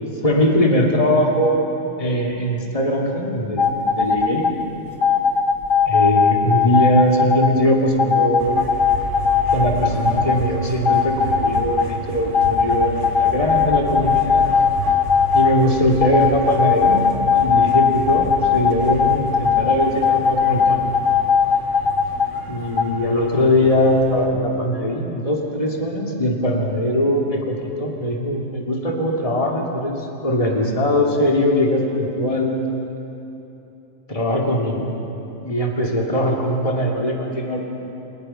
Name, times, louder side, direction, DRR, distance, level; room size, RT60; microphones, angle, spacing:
voice 1, 0.2-1.6 2.0-4.4 5.9-8.7 9.5-14.5 15.3-20.8 22.5-32.6 34.1-34.9 35.4-37.6, equal, 25° left, 0 dB, 2.6 m, -21 dB
sound 1, 3.6-4.5 5.0-7.5 8.0-10.4 10.7-11.9 12.3-15.5 16.0-22.3 22.8-22.9, left 6 dB, 80° left, 2.2 m, -18 dB
sound 2, 8.4-24.3, right 2 dB, 70° right, 2.6 m, -33 dB
28.5 x 27.5 x 5.7 m, 3.0 s
omnidirectional pair, 1.3 m